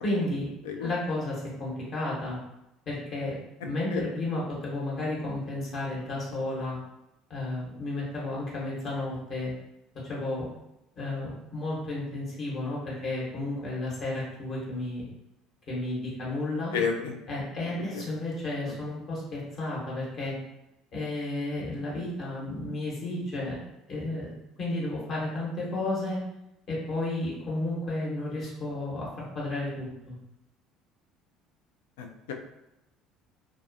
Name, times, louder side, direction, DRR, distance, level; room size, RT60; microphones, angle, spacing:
voice 1, 0.0-0.5 0.8-2.4 2.9-3.4 3.6-6.8 7.3-9.5 10.0-10.5 11.0-15.0 15.7-16.7 17.3-20.4 20.9-23.6 23.9-24.3 24.6-26.2 26.7-30.1, left 2 dB, 45° left, -6 dB, 1.1 m, -32 dB
voice 2, 16.7-17.1 17.9-18.0 32.0-32.3, left 6 dB, 70° left, 3 dB, 0.3 m, -30 dB
2.3 x 2.3 x 2.6 m, 0.88 s
figure-of-eight pair, 60°, 0 cm